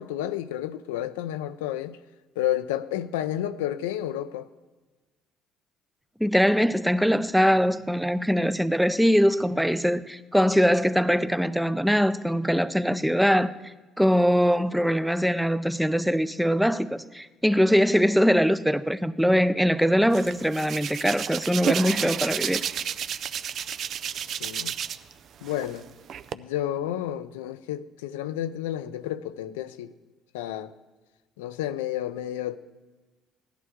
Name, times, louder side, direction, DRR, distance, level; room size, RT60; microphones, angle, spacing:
voice 1, 0.0-2.0 2.4-4.5 24.4-24.8 25.4-25.8 26.3-29.9 30.3-30.7 31.4-32.6, left 12 dB, 90° left, 0.4 m, -31 dB
voice 2, 6.2-13.5 14.0-22.6, equal, ahead, 0.6 m, -22 dB
Hands, 20.1-25.1 25.4-26.3, right 8 dB, 60° right, 0.5 m, -31 dB
16.5 x 11.0 x 3.7 m
hypercardioid pair, 65°, 0 cm